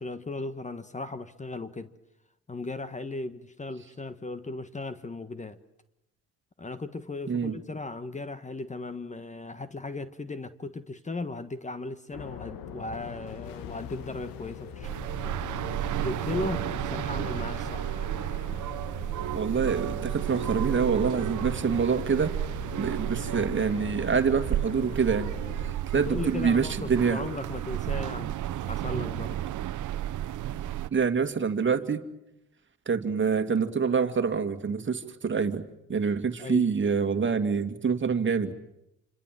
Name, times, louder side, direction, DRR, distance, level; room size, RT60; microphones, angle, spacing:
voice 1, 0.0-1.9 2.5-5.6 6.6-15.0 16.0-18.1 25.9-29.4 36.4-36.7, left 3 dB, 20° left, 1.4 m, -36 dB
voice 2, 7.3-7.6 19.3-22.3 22.8-25.3 25.6-27.2 30.9-32.0 32.9-35.6 35.9-38.5, right 6 dB, 35° right, 2.3 m, -26 dB
sound 1, 12.1-25.7, left 9 dB, 80° left, 2.0 m, -42 dB
sound 2, 14.8-30.9, right 12 dB, 60° right, 1.1 m, -32 dB
28.0 x 25.5 x 7.6 m
supercardioid pair, 70°, 34 cm